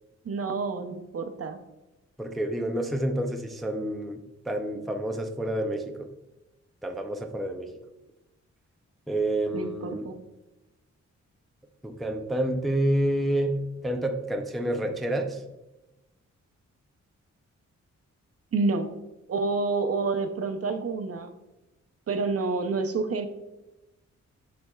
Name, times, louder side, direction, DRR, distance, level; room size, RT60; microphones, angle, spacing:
voice 1, 0.2-1.6 9.5-10.2 18.5-18.9 19.3-21.3 22.1-23.3, right 4 dB, 50° right, 7 dB, 0.6 m, -28 dB
voice 2, 2.2-6.1 6.8-7.7 9.1-10.1 11.8-15.4, right 1 dB, ahead, 4 dB, 0.4 m, -29 dB
11.0 x 4.2 x 2.3 m, 1.0 s
wide cardioid pair, 160°, 29 cm